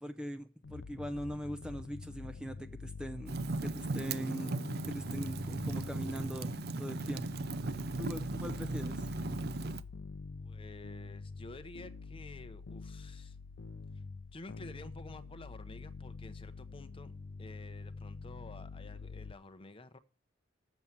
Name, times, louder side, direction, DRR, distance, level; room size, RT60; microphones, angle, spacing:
voice 1, 0.0-4.5 4.8-6.5 6.8-7.3 8.0-9.1, equal, 5° right, 0.5 m, -41 dB
sound 1, 0.6-19.3, left 4 dB, 65° left, 0.5 m, -46 dB
Fire, 3.3-9.8, right 3 dB, 55° right, 0.5 m, -37 dB
voice 2, 10.4-13.4 13.9-14.0 14.3-17.1 17.4-20.0, left 2 dB, 30° left, 0.7 m, -51 dB
7.3 x 7.1 x 7.8 m
head